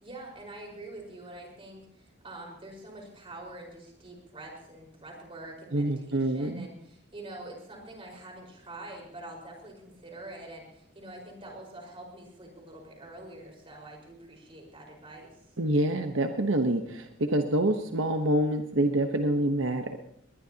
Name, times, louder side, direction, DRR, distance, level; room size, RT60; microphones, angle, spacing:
voice 1, 0.0-15.6, right 1 dB, 30° right, 0 dB, 4.9 m, -45 dB
voice 2, 5.7-6.7 15.6-20.0, right 1 dB, 85° right, 5 dB, 1.1 m, -26 dB
20.5 x 20.5 x 2.9 m, 0.73 s
head